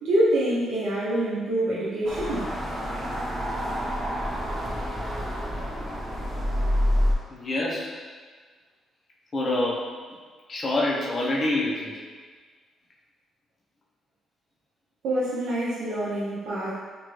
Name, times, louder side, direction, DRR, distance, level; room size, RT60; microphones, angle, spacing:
voice 1, 0.0-2.5 15.0-16.8, right 1 dB, 75° right, -8 dB, 0.6 m, -26 dB
sound 1, 2.1-7.1, equal, 20° right, 0.7 m, -27 dB
voice 2, 7.3-7.9 9.3-9.9 10.5-12.0, left 2 dB, 35° left, -4 dB, 0.8 m, -26 dB
2.9 x 2.5 x 3.0 m, 1.5 s
cardioid pair, 90°, 0 cm